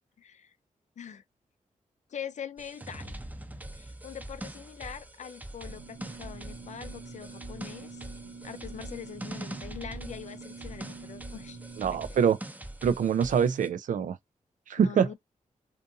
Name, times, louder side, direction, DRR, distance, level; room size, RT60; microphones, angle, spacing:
voice 1, 0.2-0.5 1.0-1.2 2.1-3.1 3.7-8.0 8.4-11.6 11.9-12.1 14.8-15.1, left 8 dB, 60° left, 0.4 m, -43 dB
sound 1, 2.6-13.7, right 1 dB, 10° right, 0.6 m, -43 dB
sound 2, 5.7-12.1, right 4 dB, 85° right, 0.8 m, -46 dB
voice 2, 11.8-12.4 12.8-14.2 14.7-15.1, right 7 dB, 70° right, 0.4 m, -25 dB
2.6 x 2.5 x 2.5 m
cardioid pair, 60°, 14 cm